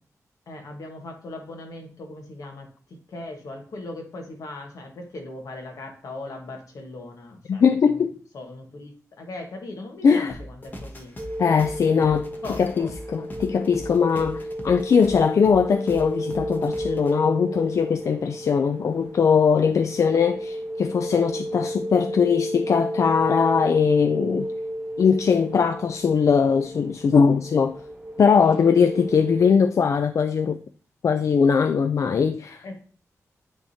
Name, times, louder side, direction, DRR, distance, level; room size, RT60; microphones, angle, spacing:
voice 1, 0.5-8.0 8.3-11.1 11.9-12.9 32.6-32.8, left 2 dB, 75° left, 1.4 m, -39 dB
voice 2, 7.5-8.1 10.0-10.3 11.4-12.3 12.6-24.5 25.0-27.8 28.2-30.6 31.0-32.6, left 6 dB, 60° left, 0.3 m, -20 dB
sound 1, 10.3-17.1, equal, 30° left, 1.0 m, -40 dB
sound 2, 11.2-29.5, equal, 10° right, 0.8 m, -33 dB
9.8 x 3.6 x 2.7 m
wide cardioid pair, 130°, 6 cm